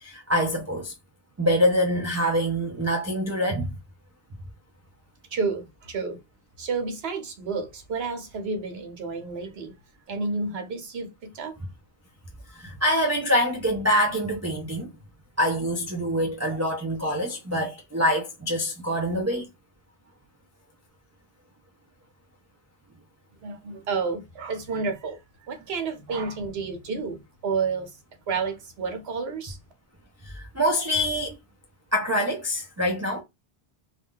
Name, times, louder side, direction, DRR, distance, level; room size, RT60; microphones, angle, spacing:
voice 1, 0.0-0.9 1.4-3.7 12.6-14.9 15.4-19.4 30.2-31.3 31.9-33.2, equal, 25° right, 0.4 m, -25 dB
voice 2, 5.3-6.2 6.6-9.7 10.1-11.6 23.4-28.0 28.3-29.6, right 4 dB, 80° right, 1.0 m, -30 dB
2.5 x 2.3 x 3.6 m
omnidirectional pair, 1.0 m